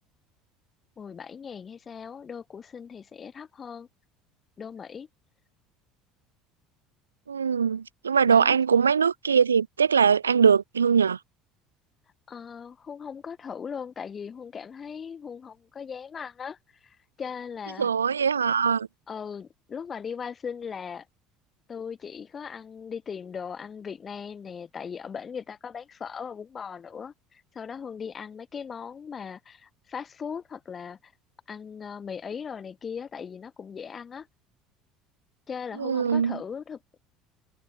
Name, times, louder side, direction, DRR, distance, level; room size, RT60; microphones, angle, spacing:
voice 1, 1.0-3.9 4.6-5.1 8.3-8.6 12.3-17.9 19.1-21.1 21.7-31.1 31.5-34.3 35.5-37.0, left 6 dB, 35° left, 6.3 m, -38 dB
voice 2, 7.3-11.2 17.8-18.9 35.8-36.4, right 6 dB, 85° right, 1.1 m, -22 dB
figure-of-eight pair, 65°, 0 cm